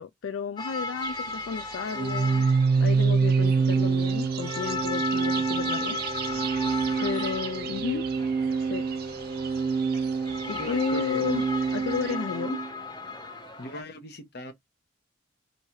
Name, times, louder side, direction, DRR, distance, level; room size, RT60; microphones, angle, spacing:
voice 1, 0.0-2.5 2.8-6.3 7.0-8.0 8.6-8.9 10.4-11.4 11.7-12.6, left 6 dB, 70° left, 0.3 m, -32 dB
sound 1, 0.6-13.8, left 4 dB, 20° left, 0.7 m, -37 dB
sound 2, 1.0-12.1, right 10 dB, 50° right, 0.4 m, -41 dB
Organ, 1.9-12.7, right 5 dB, 25° right, 0.8 m, -26 dB
voice 2, 10.6-11.4 13.6-14.5, left 2 dB, 50° left, 1.0 m, -38 dB
3.2 x 2.7 x 4.5 m
head